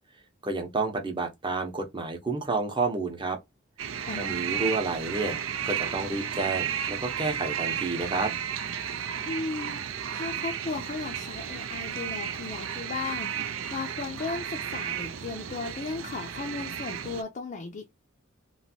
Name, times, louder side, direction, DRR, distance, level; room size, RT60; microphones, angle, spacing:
voice 1, 0.4-3.4 4.1-5.4 5.7-8.3, right 3 dB, 25° right, 0.8 m, -30 dB
sound 1, 3.8-17.2, right 9 dB, 70° right, 0.5 m, -33 dB
voice 2, 4.1-4.7 9.3-9.8 10.1-17.9, left 4 dB, 40° left, 0.5 m, -36 dB
3.1 x 2.6 x 2.7 m
head